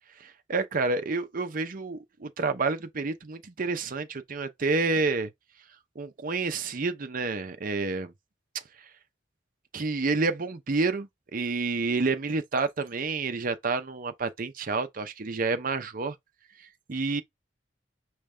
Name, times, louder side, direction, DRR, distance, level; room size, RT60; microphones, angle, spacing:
voice 1, 0.2-5.3 6.0-8.1 8.8-8.9 9.7-16.2 16.6-17.2, right 3 dB, 50° right, 0.7 m, -29 dB
5.1 x 3.1 x 3.4 m
head